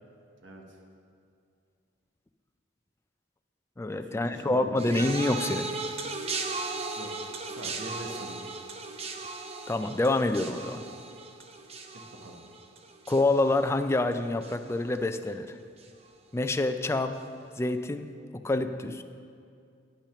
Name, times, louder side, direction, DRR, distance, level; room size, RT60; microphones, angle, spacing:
voice 1, 0.4-0.8 4.0-5.0 6.9-8.4 12.2-12.4, right 1 dB, 75° right, 0 dB, 1.2 m, -43 dB
voice 2, 3.8-5.7 9.7-10.8 13.1-15.6 16.3-17.2 17.6-18.1 18.3-19.0, left 2 dB, 15° left, 8 dB, 0.3 m, -27 dB
sound 1, 4.8-14.1 14.4-14.9 15.8-15.9, right 3 dB, 35° right, 0.6 m, -37 dB
9.9 x 6.0 x 6.8 m, 2.4 s
head